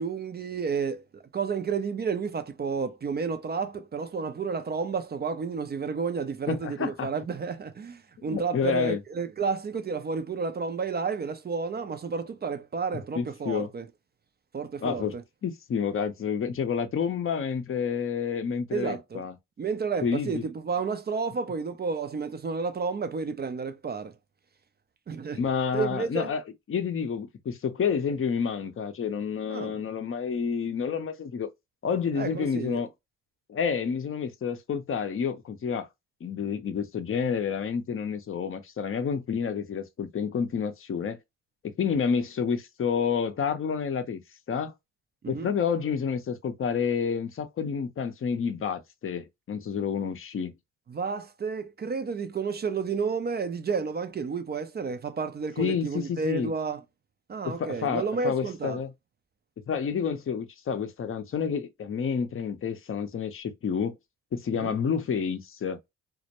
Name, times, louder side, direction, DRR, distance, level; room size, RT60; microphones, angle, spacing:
voice 1, 0.0-13.9 14.5-15.2 18.7-19.2 19.6-24.1 25.1-25.4 25.7-26.3 29.5-29.8 32.2-32.8 45.2-45.5 50.9-56.8 57.3-58.8 64.5-64.8, right 5 dB, 25° right, 0.4 m, -31 dB
voice 2, 6.5-7.1 8.2-9.0 13.2-13.7 14.8-15.2 15.4-19.4 20.0-20.4 25.4-26.4 26.7-31.5 31.8-32.9 33.5-35.9 36.2-41.2 41.8-44.2 44.5-44.7 45.3-50.5 55.6-56.5 57.4-58.9 59.7-64.0 64.3-65.8, left 6 dB, 35° left, 0.6 m, -29 dB
2.1 x 2.1 x 2.8 m
supercardioid pair, 60°, 41 cm